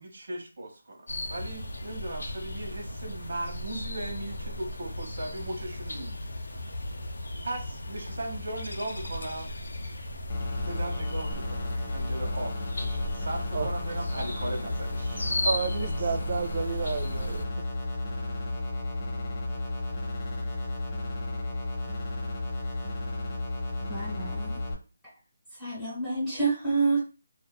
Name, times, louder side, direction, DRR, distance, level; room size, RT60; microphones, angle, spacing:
voice 1, 0.0-6.2 7.4-9.5 10.7-15.2 15.8-16.1, right 1 dB, 60° right, 0.8 m, -38 dB
sound 1, 1.1-17.5, left 1 dB, 80° left, 0.5 m, -36 dB
sound 2, 10.3-24.7, left 2 dB, 25° left, 0.7 m, -33 dB
voice 2, 15.4-17.4, right 5 dB, 45° right, 0.3 m, -30 dB
voice 3, 23.9-24.6 25.6-27.0, right 4 dB, 5° left, 1.2 m, -28 dB
2.5 x 2.2 x 2.2 m
figure-of-eight pair, 165°, 0 cm